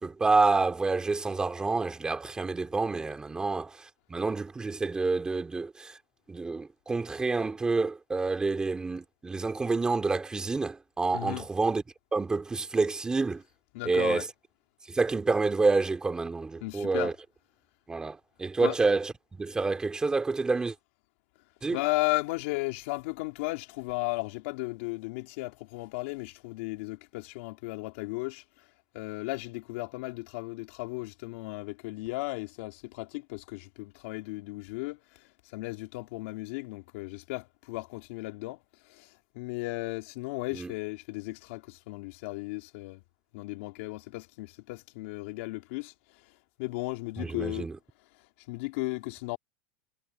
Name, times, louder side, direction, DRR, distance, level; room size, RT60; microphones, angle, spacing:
voice 1, 0.0-6.0 6.3-11.8 12.1-13.4 13.8-14.3 14.9-17.1 17.9-20.7 21.6-21.8 40.5-40.7 47.2-47.8, right 3 dB, 10° right, 3.0 m, -28 dB
voice 2, 11.1-11.5 13.7-14.2 16.6-17.1 18.6-18.8 21.7-28.4 28.9-35.0 35.5-38.6 38.9-39.1 39.3-43.0 43.3-45.9 46.6-47.7 48.5-49.4, left 22 dB, 70° left, 3.1 m, -35 dB
supercardioid pair, 155°, 7 cm